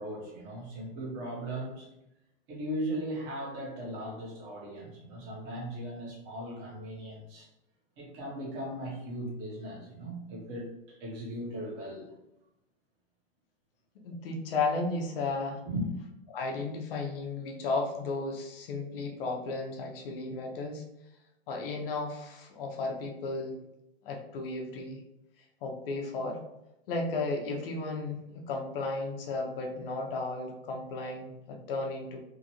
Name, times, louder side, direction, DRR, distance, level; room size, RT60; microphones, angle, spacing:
voice 1, 0.0-1.9 2.5-7.5 8.0-12.1 15.7-15.9, right 1 dB, 35° right, -2 dB, 1.1 m, -38 dB
voice 2, 14.0-15.6 16.3-20.8 21.5-23.6 24.0-25.0 25.6-26.4 26.9-32.2, left 3 dB, 65° left, 2 dB, 0.8 m, -34 dB
3.0 x 2.5 x 2.9 m, 0.87 s
hypercardioid pair, 130°, 30 cm